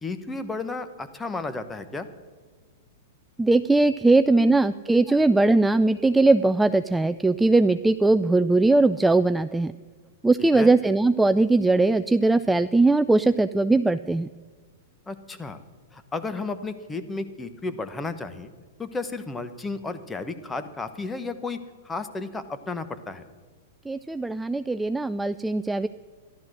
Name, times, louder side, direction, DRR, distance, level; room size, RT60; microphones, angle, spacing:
voice 1, 0.0-2.1 4.0-4.5 5.1-5.2 10.4-10.7 15.1-15.6 15.9-18.5 18.8-21.6 21.8-23.3, left 3 dB, 15° left, 10 dB, 1.1 m, -33 dB
voice 2, 3.4-9.7 10.2-14.3 23.9-25.9, right 2 dB, 5° right, 12 dB, 0.3 m, -20 dB
14.0 x 11.5 x 6.3 m, 1.4 s
hypercardioid pair, 105°, 0 cm